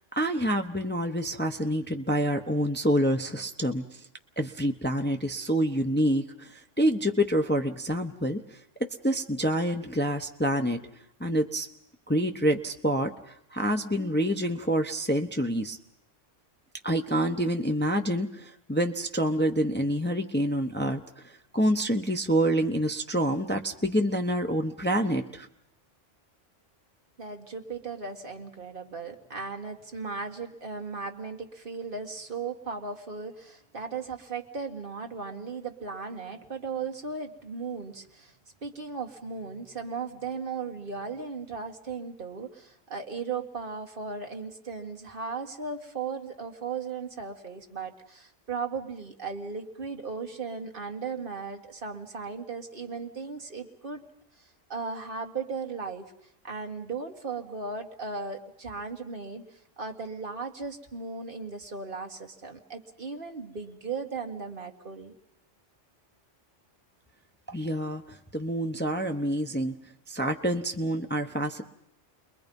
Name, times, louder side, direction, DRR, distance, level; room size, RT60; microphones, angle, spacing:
voice 1, 0.0-4.0 4.4-8.4 9.0-10.8 11.2-11.7 12.1-15.8 16.8-25.5 67.5-69.7 70.1-71.6, equal, 10° left, 4 dB, 0.8 m, -27 dB
voice 2, 27.2-38.3 38.6-54.1 54.4-56.1 56.4-65.1, right 4 dB, 45° right, 2 dB, 1.9 m, -37 dB
30.0 x 22.0 x 5.4 m, 0.76 s
omnidirectional pair, 1.3 m